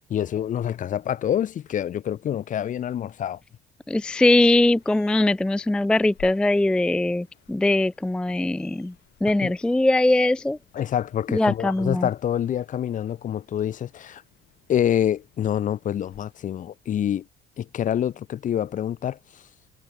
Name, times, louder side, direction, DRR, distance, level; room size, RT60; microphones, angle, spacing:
voice 1, 0.1-3.4 9.4-9.5 10.7-14.2 14.7-17.3 17.6-19.4, left 10 dB, 50° left, 1.3 m, -26 dB
voice 2, 3.9-8.9 9.2-10.6 11.3-12.1, left 2 dB, 5° left, 0.3 m, -21 dB
sound 1, 4.3-16.5, left 14 dB, 75° left, 7.9 m, -56 dB
cardioid pair, 110°, 17 cm